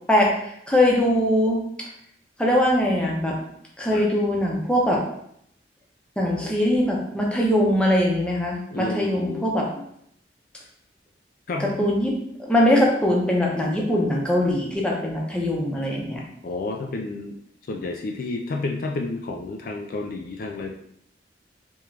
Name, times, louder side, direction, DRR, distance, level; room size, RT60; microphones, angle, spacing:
voice 1, 0.1-1.6 2.4-3.4 3.8-5.0 6.2-9.8 11.6-12.1 12.4-16.2, left 1 dB, 5° left, -2 dB, 0.7 m, -21 dB
voice 2, 8.7-9.6 11.5-11.9 16.4-17.4 17.7-20.7, left 3 dB, 55° left, 2 dB, 0.4 m, -30 dB
3.6 x 3.0 x 3.2 m, 0.71 s
head